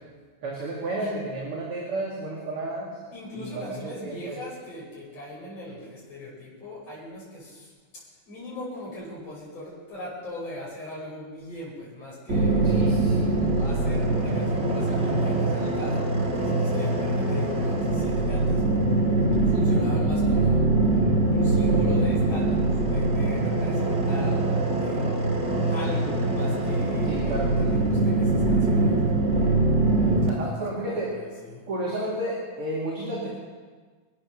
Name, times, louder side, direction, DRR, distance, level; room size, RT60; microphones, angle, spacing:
voice 1, 0.4-3.0 3.3-4.4 12.6-13.3 27.0-27.7 30.3-31.2 31.7-33.3, right 1 dB, 45° right, -5 dB, 3.3 m, -32 dB
voice 2, 3.1-12.7 13.2-18.6 19.4-20.7 21.2-24.4 24.8-25.0 25.7-27.4 27.7-29.0 30.3-31.7, left 1 dB, 55° left, -6 dB, 6.7 m, -40 dB
sound 1, 12.3-30.3, right 2 dB, 25° right, 1.8 m, -23 dB
25.0 x 8.6 x 6.5 m, 1.5 s
omnidirectional pair, 3.5 m